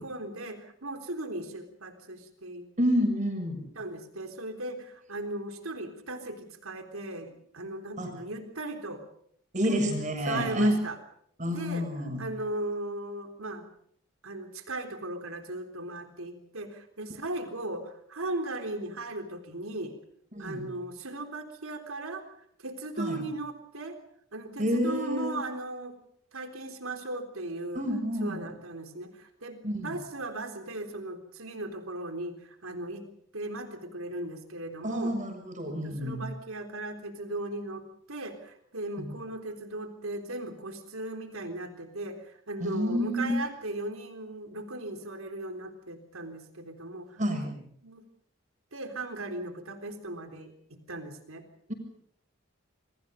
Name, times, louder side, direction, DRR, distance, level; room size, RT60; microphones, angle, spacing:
voice 1, 0.0-2.7 3.8-9.0 9.6-9.8 10.3-11.0 11.5-11.9 12.2-13.7 14.2-19.9 20.4-22.3 22.6-24.0 24.3-26.0 26.3-27.8 28.2-33.1 33.3-35.1 35.6-47.2 47.8-48.0 48.7-51.4, right 2 dB, 85° right, 6 dB, 3.8 m, -37 dB
voice 2, 2.8-3.6 8.0-8.1 9.5-10.8 11.4-12.2 20.3-20.6 23.0-23.3 24.6-25.4 27.7-28.5 29.6-30.0 34.8-36.3 39.0-39.1 42.6-43.3 47.2-47.6 51.7-51.8, equal, 35° right, 5 dB, 7.2 m, -29 dB
28.5 x 23.5 x 5.3 m, 0.66 s
head